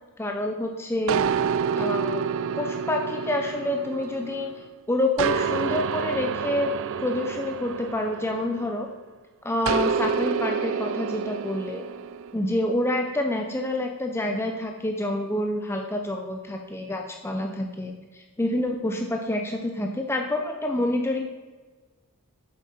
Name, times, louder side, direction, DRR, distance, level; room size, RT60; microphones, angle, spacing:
voice 1, 0.2-1.2 1.7-2.2 2.6-4.5 4.9-6.7 7.0-8.9 9.4-11.8 12.3-21.2, left 1 dB, 10° left, 2 dB, 0.5 m, -27 dB
sound 1, 1.1-4.6 5.2-8.9 9.7-12.3, right 6 dB, 60° right, 0.3 m, -28 dB
8.3 x 7.5 x 4.2 m, 1.4 s
head